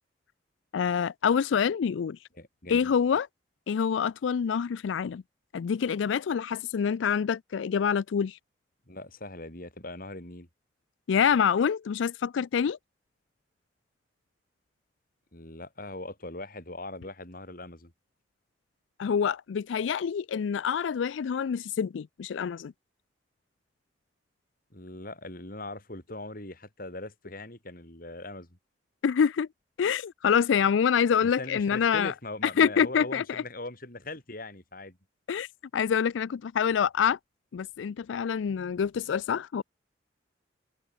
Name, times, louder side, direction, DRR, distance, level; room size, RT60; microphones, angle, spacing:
voice 1, 0.7-2.2 2.7-3.3 3.7-5.2 5.5-8.4 11.1-12.8 19.0-22.7 29.0-29.5 29.8-32.1 32.4-33.4 35.3-35.5 35.7-37.2 37.5-39.6, left 7 dB, 90° left, 0.4 m, -26 dB
voice 2, 2.4-2.9 8.9-10.5 15.3-17.9 24.7-28.6 31.2-35.0, left 2 dB, 50° left, 6.1 m, -41 dB
head